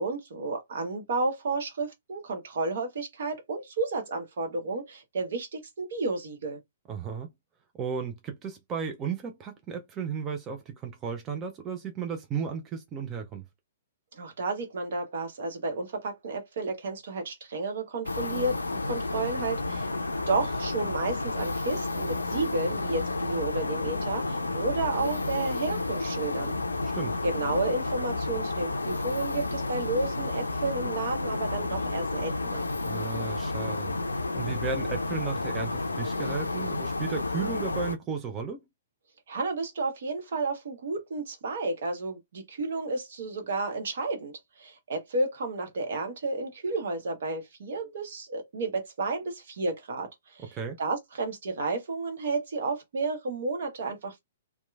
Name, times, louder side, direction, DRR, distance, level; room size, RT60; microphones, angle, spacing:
voice 1, 0.0-6.6 14.1-19.9 20.3-26.5 27.2-32.6 39.3-50.4 50.8-54.2, right 3 dB, 55° right, 0.9 m, -32 dB
voice 2, 6.9-7.3 7.7-13.4 26.9-27.2 32.8-38.6 50.5-50.8, right 6 dB, 20° right, 0.4 m, -34 dB
sound 1, 18.0-38.0, left 2 dB, 80° left, 0.4 m, -31 dB
2.9 x 2.2 x 2.3 m
figure-of-eight pair, 115°, 0 cm